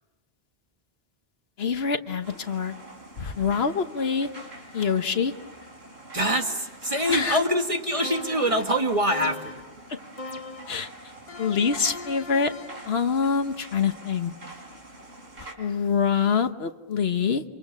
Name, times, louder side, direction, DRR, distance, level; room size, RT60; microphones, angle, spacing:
voice 1, 1.6-2.8 3.2-4.3 4.7-5.3 7.1-7.4 10.7-10.9 11.4-12.5 12.8-14.3 15.4-17.4, left 6 dB, 80° left, 9 dB, 1.4 m, -25 dB
sound 1, 2.2-15.5, right 2 dB, 80° right, 4.5 m, -45 dB
voice 2, 6.1-9.6, equal, 35° right, 4 dB, 1.9 m, -24 dB
sound 2, 8.0-8.6 9.1-9.7 10.2-10.8 11.3-12.9, left 2 dB, 35° left, 1.2 m, -39 dB
28.0 x 26.5 x 7.3 m, 1.0 s
omnidirectional pair, 1.0 m